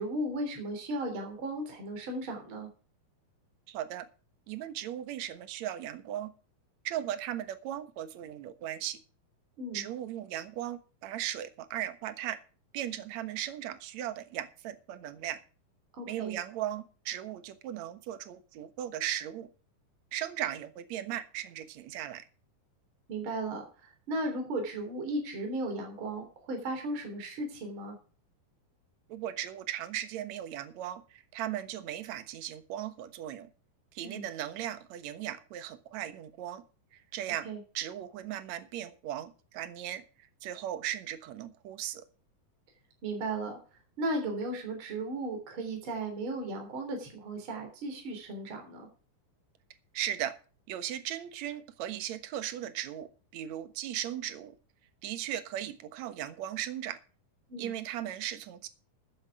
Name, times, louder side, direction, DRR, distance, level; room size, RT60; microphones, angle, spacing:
voice 1, 0.0-2.7 9.6-9.8 15.9-16.4 23.1-28.0 34.0-34.3 37.5-37.6 43.0-43.6 44.0-48.9 57.5-57.7, right 2 dB, 35° right, 3 dB, 3.9 m, -35 dB
voice 2, 3.7-4.1 4.5-6.3 6.8-9.0 9.7-12.4 12.7-15.4 16.1-19.5 20.1-22.3 29.1-33.5 33.9-36.6 36.9-37.5 37.7-40.0 40.4-42.0 49.9-50.4 50.7-54.5 55.0-57.0 57.6-58.7, right 11 dB, 60° right, 11 dB, 2.1 m, -37 dB
13.5 x 10.5 x 4.8 m, 0.37 s
omnidirectional pair, 4.4 m